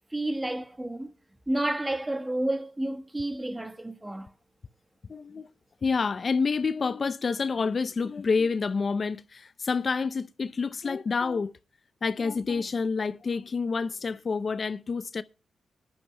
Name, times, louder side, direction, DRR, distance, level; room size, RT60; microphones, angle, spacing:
voice 1, 0.1-1.1 1.5-4.3, right 1 dB, 20° right, 1.3 m, -30 dB
voice 2, 5.1-5.5 5.8-11.5 12.0-15.2, left 4 dB, 50° left, 0.5 m, -28 dB
22.0 x 10.5 x 2.2 m
supercardioid pair, 45°, 0 cm